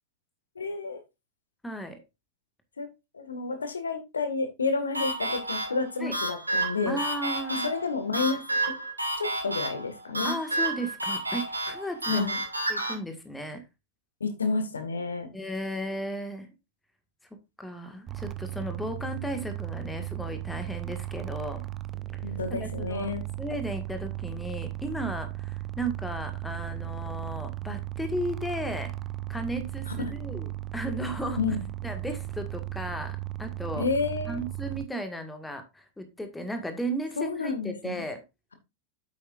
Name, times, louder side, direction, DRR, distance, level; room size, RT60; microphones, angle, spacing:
voice 1, 0.6-1.0 2.8-2.9 3.1-7.0 7.5-8.8 9.2-10.4 12.1-12.4 14.2-15.3 22.2-23.2 29.9-30.1 31.4-31.6 33.8-34.4 37.2-38.0, left 4 dB, 75° left, 8 dB, 1.8 m, -30 dB
voice 2, 1.6-2.0 6.0-6.2 6.9-7.7 10.2-12.3 12.7-13.6 15.3-16.5 17.6-21.6 22.5-28.9 29.3-31.4 31.8-33.9 34.3-38.2, equal, 5° left, 6 dB, 1.8 m, -35 dB
sound 1, 4.9-13.0, right 2 dB, 85° right, 2.4 m, -31 dB
sound 2, 18.1-34.8, right 16 dB, 25° right, 0.7 m, -36 dB
8.5 x 8.4 x 2.5 m, 0.24 s
figure-of-eight pair, 90°, 0 cm